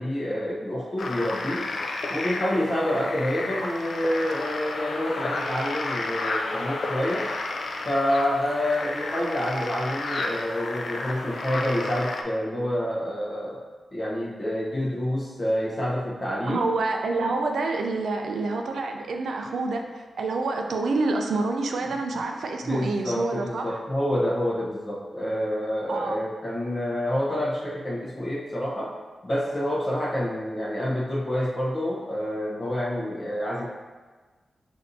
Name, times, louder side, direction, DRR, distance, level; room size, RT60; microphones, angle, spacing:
voice 1, 0.0-1.7 2.1-7.3 7.8-13.6 13.9-16.6 22.6-29.0 29.2-33.7, left 1 dB, 25° left, -6 dB, 0.9 m, -28 dB
sound 1, 1.0-12.2, left 2 dB, 55° left, 0.4 m, -32 dB
voice 2, 16.5-23.8 25.9-26.2, right 3 dB, 80° right, 3 dB, 0.4 m, -27 dB
6.3 x 2.7 x 2.7 m, 1.4 s
wide cardioid pair, 175°, 0 cm